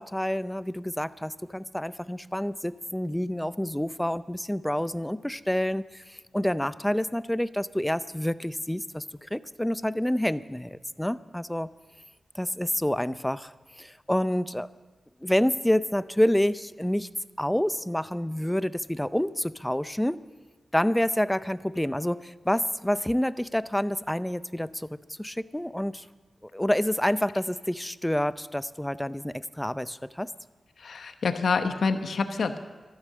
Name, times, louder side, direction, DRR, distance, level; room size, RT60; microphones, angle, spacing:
voice 1, 0.0-11.7 12.3-14.7 15.2-17.1 17.4-20.2 20.7-26.1 26.5-30.3, equal, 10° left, 15 dB, 0.5 m, -28 dB
voice 2, 30.8-32.6, left 4 dB, 75° left, 8 dB, 0.9 m, -27 dB
13.5 x 12.0 x 7.5 m, 1.3 s
cardioid pair, 60°, 0 cm